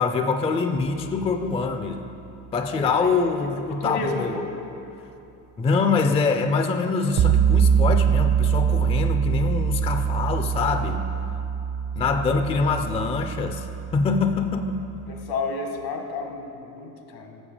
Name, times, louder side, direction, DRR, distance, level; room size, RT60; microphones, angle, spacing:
voice 1, 0.0-2.1 2.5-4.4 5.6-11.0 12.0-13.7 13.9-14.8, left 4 dB, 15° left, 7 dB, 0.3 m, -24 dB
sound 1, 0.8-1.3 7.2-15.3, right 7 dB, 50° right, 0.7 m, -24 dB
voice 2, 2.7-3.3 3.8-4.5 12.2-12.3 15.1-17.4, left 3 dB, 75° left, 3 dB, 1.3 m, -32 dB
7.1 x 6.8 x 5.0 m, 2.9 s
supercardioid pair, 80°, 43 cm